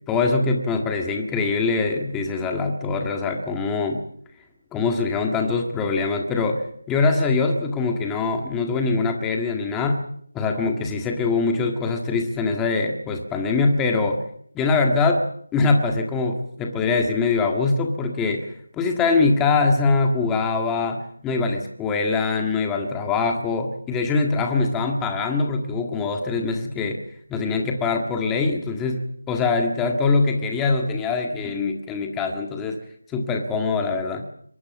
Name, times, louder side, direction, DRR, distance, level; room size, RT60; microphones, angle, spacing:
voice 1, 0.1-4.0 4.7-10.0 10.3-14.2 14.5-15.3 15.5-18.5 18.7-27.0 27.3-32.8 33.1-34.2, left 4 dB, 5° left, 3 dB, 1.7 m, -23 dB
23.5 x 22.0 x 7.4 m, 0.64 s
figure-of-eight pair, 170°, 0 cm